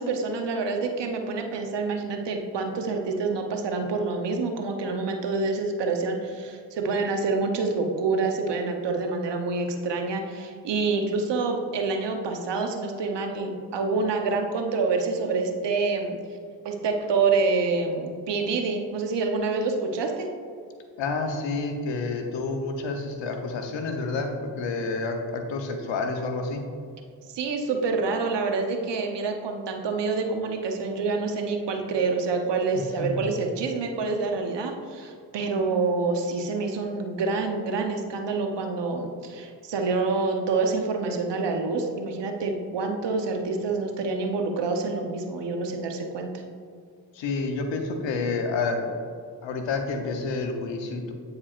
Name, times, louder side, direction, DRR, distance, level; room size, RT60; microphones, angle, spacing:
voice 1, 0.0-16.2 16.6-20.3 27.3-46.3, right 4 dB, 70° right, 4 dB, 0.9 m, -27 dB
voice 2, 21.0-26.6 32.7-33.3 47.1-48.9 49.4-51.1, left 3 dB, 85° left, 4 dB, 0.8 m, -29 dB
8.5 x 4.8 x 2.5 m, 2.2 s
supercardioid pair, 40°, 44 cm